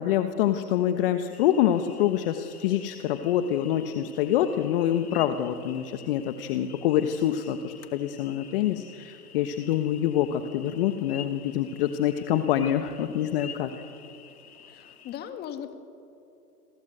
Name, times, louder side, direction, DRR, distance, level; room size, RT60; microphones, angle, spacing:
voice 1, 0.0-13.7, left 11 dB, 35° left, 8 dB, 1.3 m, -26 dB
sound 1, 1.3-15.2, left 8 dB, 65° left, 2.7 m, -48 dB
voice 2, 14.7-15.7, left 9 dB, 20° left, 8 dB, 1.9 m, -38 dB
29.0 x 23.0 x 8.0 m, 2.7 s
hypercardioid pair, 135°, 47 cm